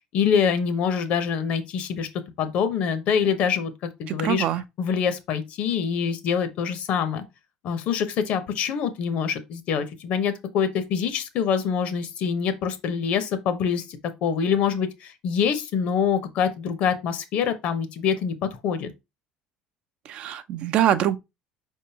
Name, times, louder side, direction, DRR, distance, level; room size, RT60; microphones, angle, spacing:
voice 1, 0.1-2.1 2.4-4.5 4.8-7.2 7.6-18.9, left 7 dB, 55° left, 0.9 m, -25 dB
voice 2, 4.1-4.6 20.1-21.2, right 11 dB, 50° right, 0.4 m, -24 dB
5.1 x 3.6 x 2.8 m
cardioid pair, 140°, 3 cm